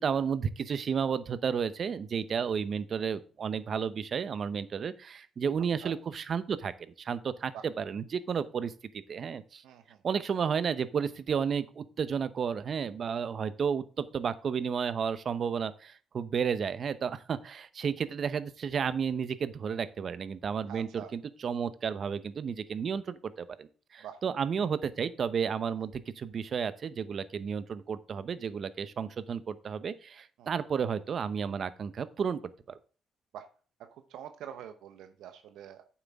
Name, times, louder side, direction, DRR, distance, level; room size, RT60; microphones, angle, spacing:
voice 1, 0.0-8.7 9.1-9.6 10.0-32.4 32.7-32.8, right 6 dB, 50° right, 14 dB, 0.8 m, -32 dB
voice 2, 9.6-10.0 20.7-21.1 24.0-24.2 30.4-30.5 33.3-33.5 33.9-35.8, right 9 dB, 85° right, 8 dB, 0.9 m, -45 dB
9.3 x 7.3 x 3.6 m, 0.39 s
cardioid pair, 90°, 0 cm